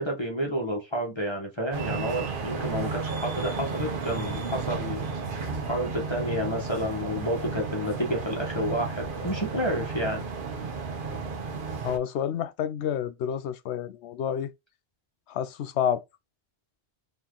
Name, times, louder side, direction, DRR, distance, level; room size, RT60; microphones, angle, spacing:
voice 1, 0.0-5.1 5.7-10.2, equal, 25° left, 1.2 m, -30 dB
sound 1, 1.7-12.0, right 4 dB, 50° right, 1.0 m, -33 dB
voice 2, 11.8-14.5 15.3-16.0, left 9 dB, 75° left, 0.8 m, -29 dB
4.4 x 3.1 x 3.8 m
omnidirectional pair, 1.1 m